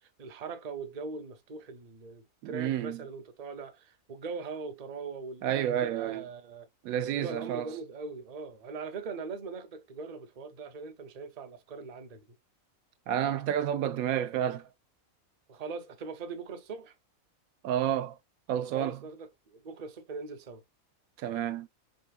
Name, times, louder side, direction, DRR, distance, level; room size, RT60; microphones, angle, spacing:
voice 1, 0.0-6.7 7.1-12.2 15.5-16.9 18.7-20.6, right 4 dB, 40° right, 0.6 m, -41 dB
voice 2, 2.4-3.0 5.4-6.2 6.8-7.7 13.1-14.7 17.6-18.2 18.5-19.0 21.2-21.7, right 10 dB, 90° right, 1.1 m, -30 dB
5.2 x 3.2 x 2.3 m
omnidirectional pair, 1.5 m